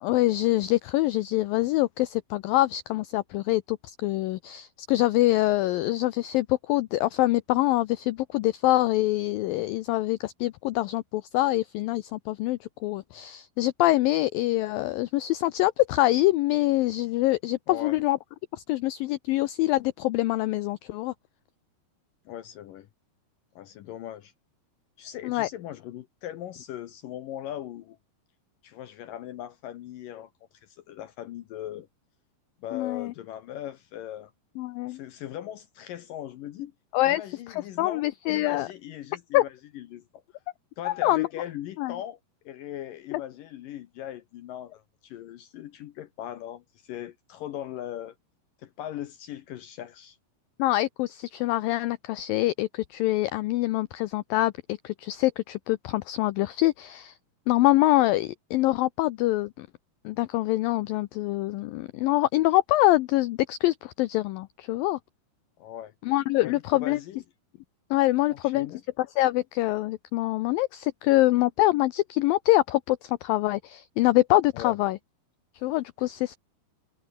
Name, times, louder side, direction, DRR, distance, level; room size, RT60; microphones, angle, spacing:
voice 1, 0.0-18.2 18.5-21.1 25.2-25.5 32.7-33.1 34.6-35.0 36.9-37.2 37.5-38.7 39.3-39.4 40.9-41.3 41.8-41.9 43.1-43.2 50.6-57.2 57.5-59.7 60.1-65.0 66.0-67.0 67.9-68.7 69.0-75.0 75.6-76.4, left 17 dB, 85° left, 2.0 m, -25 dB
voice 2, 17.7-18.0 22.3-22.9 23.6-24.3 25.0-28.0 28.6-30.3 30.6-31.9 32.6-34.3 34.9-36.7 37.0-40.0 40.8-42.2 42.5-48.2 48.6-50.2 65.6-65.9 66.4-67.2 68.3-68.8 74.5-74.8, left 11 dB, 70° left, 2.2 m, -39 dB
omnidirectional pair, 4.9 m